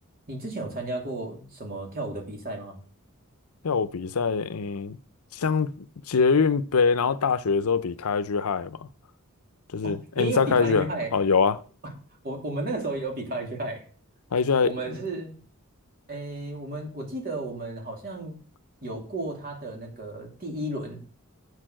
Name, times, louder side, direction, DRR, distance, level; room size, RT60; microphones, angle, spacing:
voice 1, 0.3-2.8 9.8-11.1 12.2-13.8 14.6-15.4 16.1-18.4 18.8-21.0, right 2 dB, 45° right, 2.9 m, -33 dB
voice 2, 3.6-5.0 5.3-5.7 6.1-8.9 9.7-11.6 14.3-15.0, left 5 dB, 85° left, 0.6 m, -24 dB
8.2 x 6.7 x 6.2 m
head